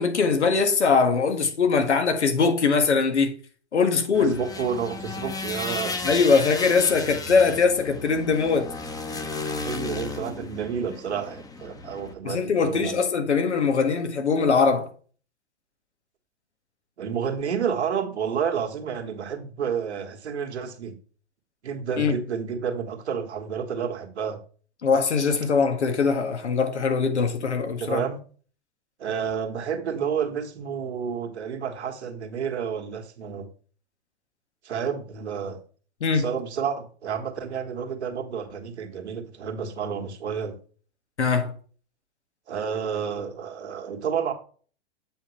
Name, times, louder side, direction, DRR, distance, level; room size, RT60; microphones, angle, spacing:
voice 1, 0.0-3.3 3.7-4.4 6.0-8.7 12.2-14.9 22.0-22.1 24.8-28.0 36.0-36.3 41.2-41.5, left 5 dB, 85° left, 1.8 m, -22 dB
sound 1, 4.1-12.1, left 3 dB, 10° left, 1.0 m, -34 dB
voice 2, 4.2-6.0 9.6-13.0 17.0-20.9 21.6-24.4 27.8-28.2 29.0-33.5 34.6-35.6 36.1-40.6 42.5-44.3, right 7 dB, 80° right, 1.7 m, -30 dB
7.9 x 5.9 x 3.2 m
hypercardioid pair, 110°, 33 cm